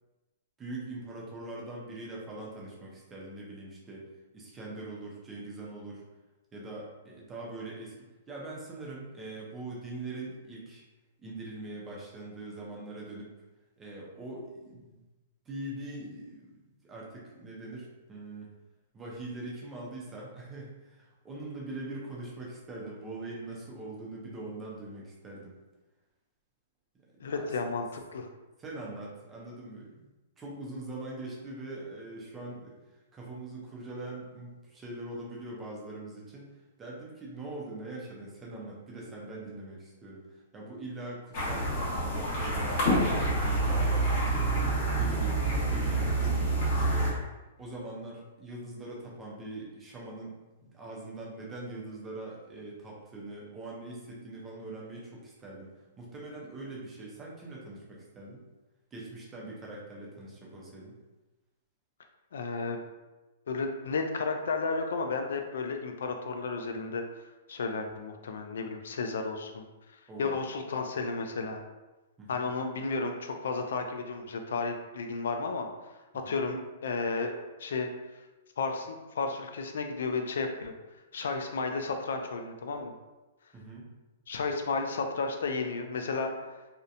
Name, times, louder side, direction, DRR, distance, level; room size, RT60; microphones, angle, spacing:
voice 1, 0.6-4.1 4.3-6.0 6.5-7.9 8.3-10.8 11.2-13.3 13.8-15.0 15.5-16.5 16.8-18.5 18.9-25.6 27.4-27.5 28.6-30.1 30.4-32.8 33.1-36.5 36.8-44.5 45.0-46.4 46.7-47.1 47.6-50.4 50.6-58.4 58.9-61.0 70.1-70.4 72.2-72.5 76.2-76.4 83.5-83.9, right 2 dB, 10° right, -4 dB, 0.5 m, -42 dB
voice 2, 27.2-28.3 62.3-62.8 63.5-67.0 67.5-69.7 70.2-71.6 72.3-75.7 76.3-77.3 77.6-77.9 78.6-80.7 81.1-82.9 84.3-86.6, left 4 dB, 75° left, 5 dB, 0.3 m, -33 dB
sound 1, 41.3-47.1, right 2 dB, 35° left, 0.8 m, -27 dB
2.7 x 2.1 x 2.5 m, 1.1 s
hypercardioid pair, 170°, 0 cm